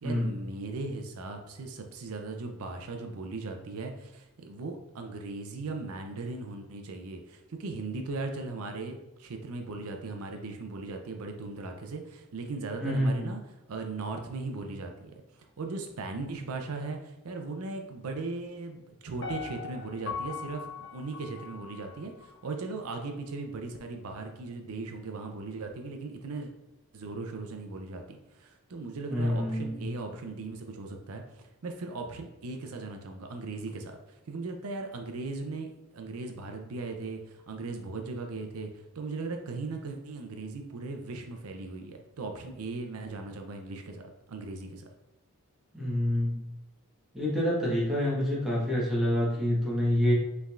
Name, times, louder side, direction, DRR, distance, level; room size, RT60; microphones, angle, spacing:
voice 1, 0.0-13.4 13.7-15.1 15.6-26.5 26.9-44.0 44.3-44.9, right 3 dB, 70° right, 4 dB, 0.5 m, -38 dB
voice 2, 12.8-13.3 29.1-29.9 45.7-46.5 47.1-50.1, left 1 dB, ahead, -7 dB, 1.1 m, -27 dB
Piano, 19.2-22.3 22.7-22.8, left 6 dB, 55° left, 0.8 m, -40 dB
5.3 x 3.4 x 2.4 m, 0.92 s
head